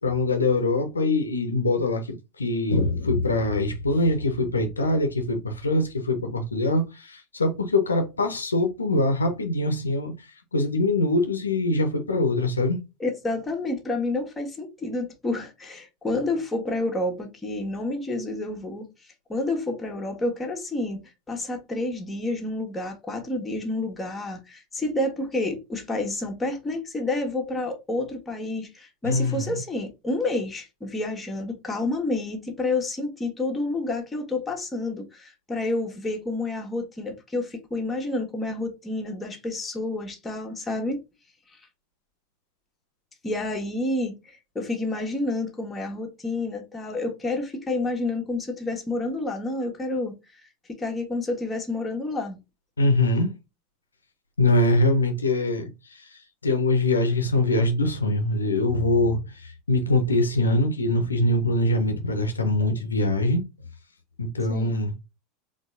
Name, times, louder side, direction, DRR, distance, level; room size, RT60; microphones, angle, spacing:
voice 1, 0.0-10.1 10.5-12.8 29.0-29.6 52.8-53.3 54.4-63.4 64.2-64.9, left 2 dB, 80° left, 0.8 m, -23 dB
voice 2, 13.0-18.9 19.3-41.0 43.2-50.4 50.7-52.4 64.5-64.8, left 2 dB, 15° left, 1.5 m, -29 dB
4.4 x 3.1 x 2.6 m
figure-of-eight pair, 80°, 0 cm